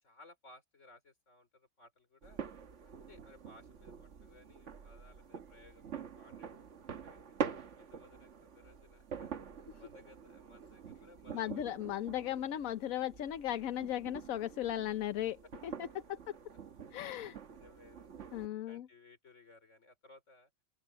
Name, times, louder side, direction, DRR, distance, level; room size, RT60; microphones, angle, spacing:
voice 1, 0.0-2.4 2.9-6.5 6.8-7.3 7.8-9.3 9.6-11.6 15.4-15.5 16.1-16.2 16.9-18.3 18.7-20.5, left 2 dB, 60° left, 4.2 m, -61 dB
sound 1, 2.2-18.5, right 7 dB, 60° right, 1.5 m, -46 dB
voice 2, 11.3-15.9 16.9-17.4 18.3-18.9, left 11 dB, 75° left, 1.2 m, -37 dB
open air
omnidirectional pair, 1.5 m